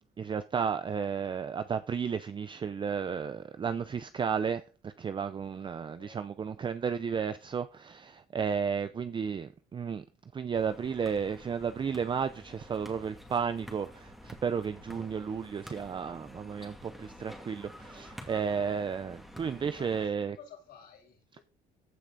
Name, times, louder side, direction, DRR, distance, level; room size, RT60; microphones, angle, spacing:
voice 1, 0.2-10.0 10.3-20.4, right 6 dB, 30° right, 0.5 m, -33 dB
voice 2, 5.5-6.3 8.6-9.2 19.7-21.4, left 7 dB, 70° left, 6.6 m, -54 dB
sound 1, 10.5-20.1, equal, ahead, 2.3 m, -49 dB
15.0 x 6.0 x 4.0 m
cardioid pair, 110°, 17 cm